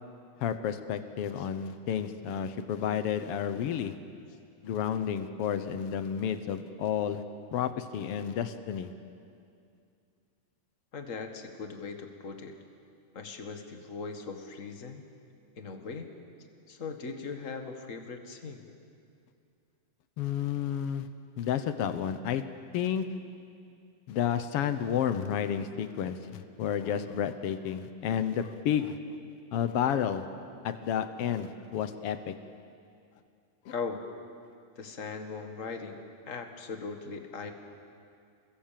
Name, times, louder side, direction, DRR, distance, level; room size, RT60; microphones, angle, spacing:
voice 1, 0.4-3.9 4.6-7.2 7.5-8.9 20.2-21.1 21.4-22.4 22.7-23.0 24.1-29.0 29.5-30.2 30.6-32.3 33.6-33.7, left 9 dB, 75° left, 10 dB, 1.4 m, -31 dB
voice 2, 10.9-12.5 13.1-15.0 15.6-16.1 16.7-18.6 33.7-34.0 34.7-36.0 36.3-37.5, left 4 dB, 35° left, 5 dB, 1.3 m, -39 dB
29.5 x 22.0 x 7.6 m, 2.4 s
omnidirectional pair, 3.9 m